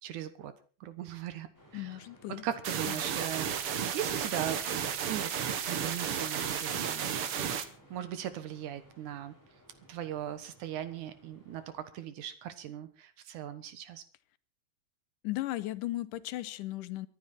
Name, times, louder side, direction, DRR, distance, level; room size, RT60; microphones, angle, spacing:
voice 1, 0.0-0.5 0.8-1.5 1.7-2.0 2.4-4.6 5.1-5.3 5.6-7.2 7.9-9.3 9.9-14.0, right 10 dB, 75° right, 12 dB, 2.6 m, -39 dB
sound 1, 1.5-11.9, right 1 dB, 5° left, 6.5 m, -58 dB
voice 2, 1.7-2.4 2.8-3.1 15.2-17.1, left 16 dB, 85° left, 14 dB, 2.4 m, -36 dB
sound 2, 2.6-7.6, right 8 dB, 55° right, 1.9 m, -33 dB
23.5 x 10.5 x 4.3 m, 0.37 s
omnidirectional pair, 3.6 m